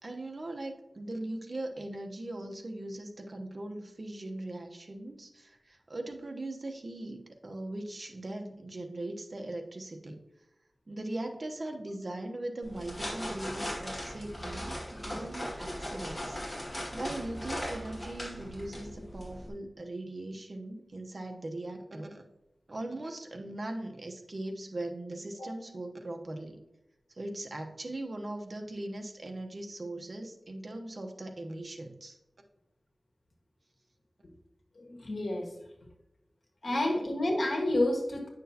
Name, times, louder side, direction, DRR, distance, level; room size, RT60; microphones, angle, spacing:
voice 1, 0.0-10.2 10.9-16.4 16.6-22.2 22.7-26.6 27.1-32.2 36.6-37.0, right 1 dB, 55° right, 3 dB, 1.0 m, -40 dB
sound 1, 12.6-19.5, equal, 25° left, 2.1 m, -39 dB
voice 2, 34.8-35.5 36.6-38.3, left 1 dB, 85° left, 0 dB, 1.6 m, -29 dB
9.5 x 6.3 x 2.9 m, 0.92 s
wide cardioid pair, 80°, 0 cm